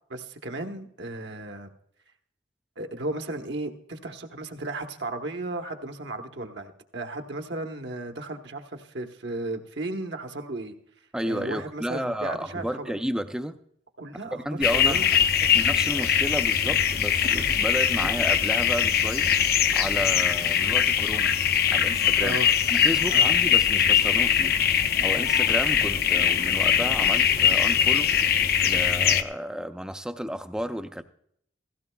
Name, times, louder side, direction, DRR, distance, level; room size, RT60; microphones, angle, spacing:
voice 1, 0.1-1.7 2.8-10.7 11.2-12.9 14.0-15.2 22.2-22.5 23.1-23.3, right 2 dB, 65° right, 1.1 m, -35 dB
voice 2, 11.1-13.6 14.4-15.1 15.5-19.3 19.7-21.3 21.7-22.4 22.7-24.6 25.0-28.1 28.6-31.0, equal, 5° right, 0.5 m, -32 dB
sound 1, 14.6-29.2, left 8 dB, 50° left, 0.6 m, -22 dB
16.5 x 16.0 x 2.3 m
head